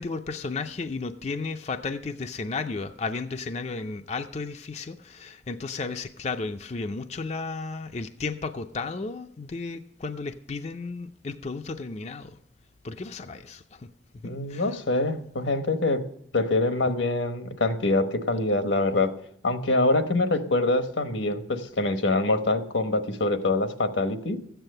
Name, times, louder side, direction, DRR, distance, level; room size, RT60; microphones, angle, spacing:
voice 1, 0.0-12.4 12.8-13.9 14.2-14.7, left 4 dB, 35° left, 7 dB, 0.4 m, -34 dB
voice 2, 14.2-16.0 16.3-19.1 19.4-24.4, left 2 dB, 85° left, 8 dB, 1.1 m, -25 dB
14.0 x 9.0 x 6.6 m, 0.69 s
head